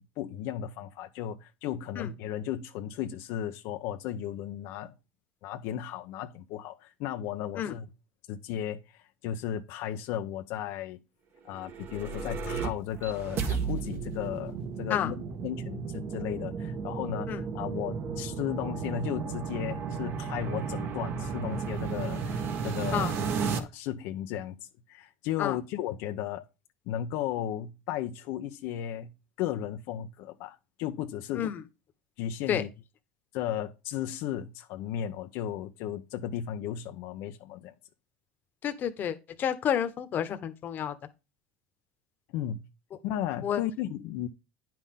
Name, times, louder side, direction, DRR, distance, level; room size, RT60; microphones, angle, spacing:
voice 1, 0.0-4.9 5.4-7.9 8.3-11.0 11.4-23.1 23.5-26.4 26.9-29.1 29.4-31.5 32.2-32.7 33.3-37.7 42.3-42.6 43.0-44.3, left 11 dB, 70° left, 0.8 m, -35 dB
sound 1, 11.5-23.6, right 5 dB, 45° right, 1.6 m, -34 dB
voice 2, 38.6-40.9 43.4-43.6, left 9 dB, 40° left, 1.2 m, -30 dB
9.8 x 6.0 x 3.7 m
supercardioid pair, 125°, 5 cm